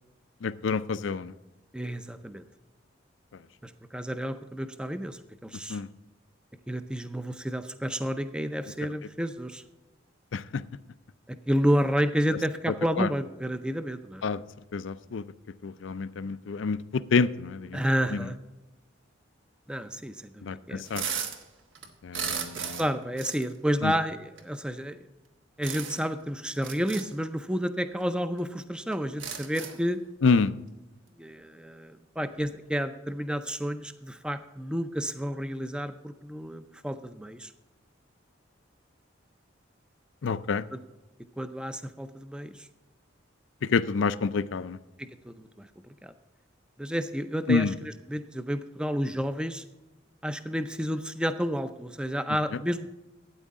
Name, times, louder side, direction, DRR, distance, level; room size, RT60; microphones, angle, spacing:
voice 1, 0.4-1.3 5.7-5.9 10.3-10.6 13.0-13.1 14.2-14.4 14.7-15.2 15.6-17.8 18.1-18.3 20.4-21.0 22.0-22.8 23.8-23.9 30.2-30.5 40.2-40.6 43.6-44.8 47.5-47.7, left 4 dB, 75° left, 15 dB, 0.4 m, -27 dB
voice 2, 1.7-2.4 3.6-5.8 6.7-9.6 11.3-14.2 17.7-18.4 19.7-20.8 22.6-25.1 25.6-30.0 31.2-37.5 40.7-40.8 41.4-42.7 45.0-46.1 46.8-49.6 50.2-52.9, equal, 5° right, 10 dB, 0.4 m, -31 dB
sound 1, 20.8-21.4 21.7-22.9 23.2-23.4 24.4-24.5 25.6-26.1 26.5-27.0 28.0-28.1 28.4-28.5 28.9-29.9, right 7 dB, 75° right, 1.3 m, -35 dB
12.5 x 9.1 x 3.7 m, 1.1 s
head